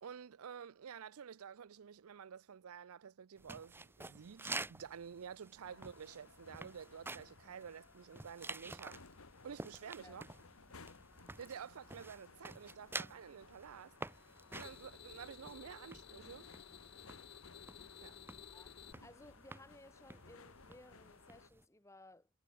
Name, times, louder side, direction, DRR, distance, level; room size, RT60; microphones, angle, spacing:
voice 1, 0.0-9.0 9.4-10.3 11.4-14.0 14.5-16.5 18.0-18.2, right 7 dB, 75° right, 0.5 m, -50 dB
sound 1, 3.4-21.7, right 3 dB, 10° right, 0.7 m, -50 dB
sound 2, 5.6-21.5, left 4 dB, 70° left, 1.6 m, -60 dB
sound 3, 14.1-18.9, left 7 dB, 50° left, 0.6 m, -56 dB
voice 2, 19.0-22.3, left 2 dB, 15° left, 1.6 m, -59 dB
head